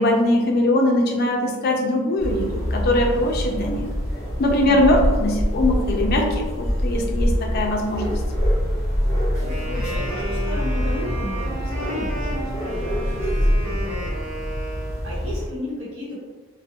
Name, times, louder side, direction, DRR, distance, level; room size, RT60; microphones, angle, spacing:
voice 1, 0.0-3.9 4.4-8.2, left 1 dB, 45° left, 1 dB, 0.4 m, -21 dB
sound 1, 2.2-15.5, equal, 15° left, 0.7 m, -25 dB
Wind instrument woodwind instrument, 9.3-15.2, right 1 dB, 45° right, 0.6 m, -33 dB
voice 2, 9.4-14.3 15.0-16.2, left 1 dB, 60° right, -6 dB, 0.9 m, -34 dB
2.4 x 2.0 x 2.7 m, 1.3 s
head